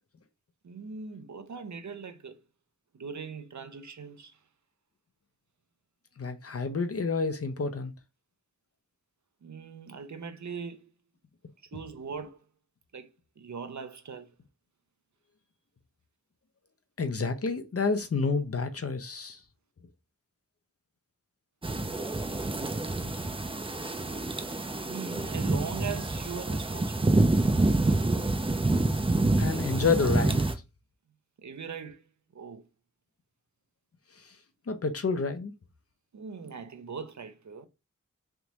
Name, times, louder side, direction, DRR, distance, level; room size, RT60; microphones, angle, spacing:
voice 1, 0.6-2.4 2.9-4.4 9.4-10.9 11.6-12.4 12.9-13.1 13.4-14.3 24.9-27.2 31.4-32.7 36.1-37.7, right 5 dB, 65° right, 0.6 m, -40 dB
voice 2, 6.2-7.9 17.0-19.4 29.4-30.5 34.7-35.5, left 4 dB, 50° left, 0.6 m, -29 dB
sound 1, 21.6-30.5, right 2 dB, 20° right, 0.5 m, -27 dB
3.4 x 2.6 x 2.9 m
wide cardioid pair, 45°, 31 cm